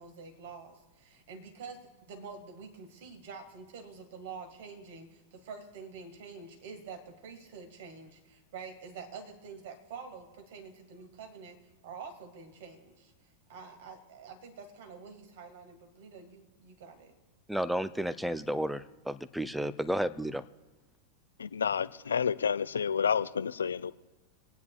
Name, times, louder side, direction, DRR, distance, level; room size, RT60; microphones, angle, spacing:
voice 1, 0.0-11.6 11.8-13.1 13.5-17.1, right 5 dB, 55° right, 1.9 m, -47 dB
voice 2, 17.5-20.4, right 1 dB, ahead, 0.5 m, -32 dB
voice 3, 21.4-23.9, left 7 dB, 70° left, 0.3 m, -29 dB
26.5 x 9.4 x 2.4 m
figure-of-eight pair, 90°, 0 cm